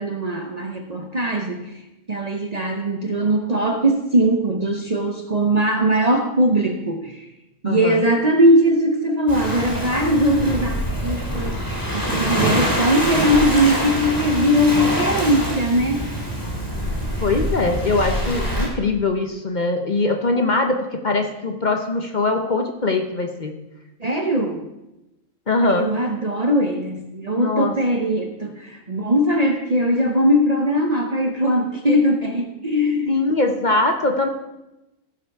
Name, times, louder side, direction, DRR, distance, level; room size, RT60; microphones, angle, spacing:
voice 1, 0.0-1.7 2.1-7.3 7.6-11.6 11.9-16.0 24.0-24.7 25.7-33.1, equal, 40° right, 4 dB, 0.7 m, -20 dB
voice 2, 7.6-8.0 17.2-23.5 25.5-25.9 27.4-27.7 33.1-34.3, left 2 dB, 40° left, 4 dB, 0.8 m, -22 dB
Waves surf, 9.3-18.7, equal, 15° left, 2.8 m, -25 dB
15.5 x 5.6 x 4.6 m, 0.95 s
omnidirectional pair, 1.4 m